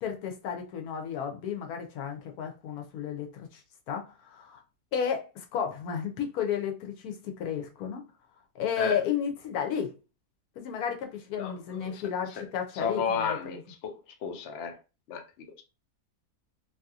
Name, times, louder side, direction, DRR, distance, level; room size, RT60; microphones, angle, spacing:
voice 1, 0.0-3.6 3.9-4.6 4.9-8.0 8.5-9.9 10.6-13.6, left 7 dB, 80° left, 1.1 m, -33 dB
voice 2, 11.4-12.0 12.3-12.4 12.7-14.8 15.1-15.2, left 6 dB, 60° left, 0.7 m, -33 dB
2.9 x 2.7 x 2.4 m
omnidirectional pair, 1.6 m